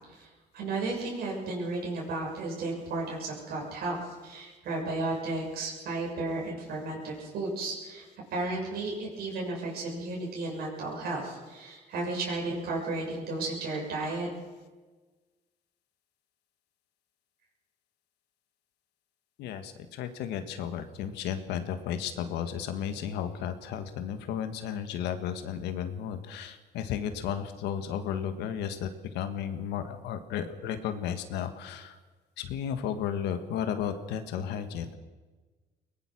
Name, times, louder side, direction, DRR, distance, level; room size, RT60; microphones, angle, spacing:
voice 1, 0.5-8.0 8.3-14.3, right 2 dB, 70° right, -2 dB, 7.0 m, -33 dB
voice 2, 19.4-32.0 32.4-35.0, left 8 dB, 85° left, 8 dB, 1.6 m, -34 dB
21.5 x 19.5 x 6.2 m, 1.3 s
cardioid pair, 110°, 17 cm